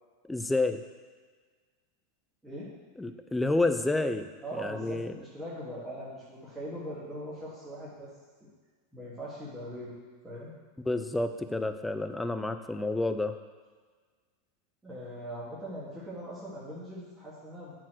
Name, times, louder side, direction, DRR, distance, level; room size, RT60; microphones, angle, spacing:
voice 1, 0.2-0.8 3.0-5.2 10.9-13.4, left 2 dB, 10° left, 8 dB, 0.6 m, -29 dB
voice 2, 4.4-8.1 8.9-10.0 10.2-10.5 14.8-17.7, equal, 10° right, -10 dB, 2.6 m, -41 dB
8.4 x 4.6 x 6.2 m, 1.5 s
hypercardioid pair, 110°, 0 cm